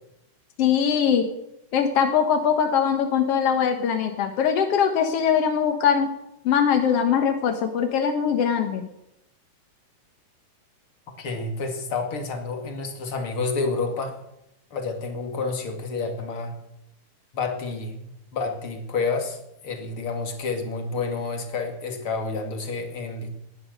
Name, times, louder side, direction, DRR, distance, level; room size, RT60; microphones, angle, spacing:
voice 1, 0.6-1.3 1.7-6.1 6.4-8.9, left 7 dB, 70° left, 6 dB, 1.4 m, -22 dB
voice 2, 11.2-14.2 14.7-16.5 17.3-19.4 19.6-23.3, left 4 dB, 40° left, 4 dB, 2.7 m, -29 dB
19.0 x 11.5 x 6.6 m, 0.82 s
omnidirectional pair, 4.6 m